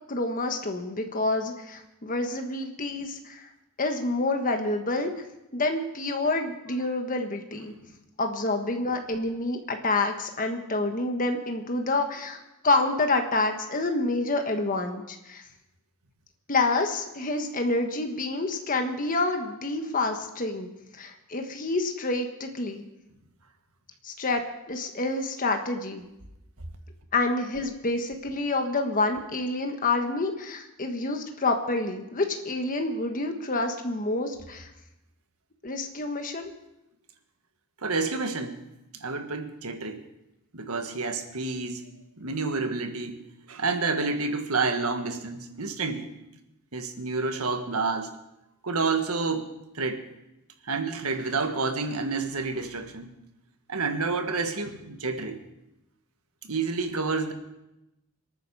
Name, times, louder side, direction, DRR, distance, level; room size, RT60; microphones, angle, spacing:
voice 1, 0.1-3.5 3.8-5.1 5.5-7.7 8.2-15.4 16.5-20.7 21.0-22.8 24.0-24.4 24.7-26.0 27.1-34.7 35.6-36.5, left 2 dB, 40° left, 4 dB, 1.4 m, -28 dB
voice 2, 37.8-38.6 38.9-40.0 40.5-41.8 42.2-43.2 43.5-46.1 46.7-48.1 48.6-50.0 50.6-53.1 53.7-55.4 56.4-57.3, right 4 dB, 85° right, 6 dB, 1.6 m, -29 dB
26.0 x 9.4 x 4.9 m, 0.90 s
head